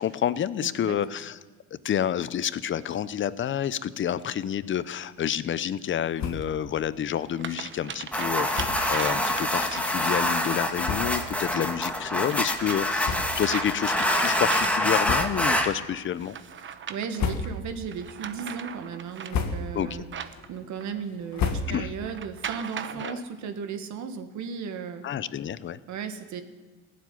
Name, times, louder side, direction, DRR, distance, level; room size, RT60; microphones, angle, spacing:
voice 1, 0.0-1.4 1.8-16.4 19.7-20.0 21.7-21.9 23.0-23.2 25.0-25.8, left 9 dB, 35° left, 16 dB, 0.7 m, -29 dB
voice 2, 0.6-1.0 16.6-20.1 20.5-25.0 25.9-26.4, right 6 dB, 55° right, 7 dB, 1.8 m, -35 dB
sound 1, 4.7-4.8 6.4-6.5 7.1-10.3 12.2-15.1 16.2-17.4 17.9-21.0 22.0-23.1, right 7 dB, 35° right, 1.0 m, -38 dB
sound 2, 6.1-6.6 7.0-7.1 7.4-7.5 8.5-8.9 9.7-9.8 10.5-10.6 10.8-11.4 11.9-12.0 13.0-13.7 14.0-14.2 15.0-15.6 16.0-16.5 17.0-17.8 18.2-18.7 19.1-19.9 20.3-22.1, left 5 dB, 55° left, 1.8 m, -33 dB
sound 3, 8.1-15.7, left 1 dB, 5° left, 1.6 m, -26 dB
16.0 x 7.7 x 9.8 m, 1.3 s
supercardioid pair, 95°, 34 cm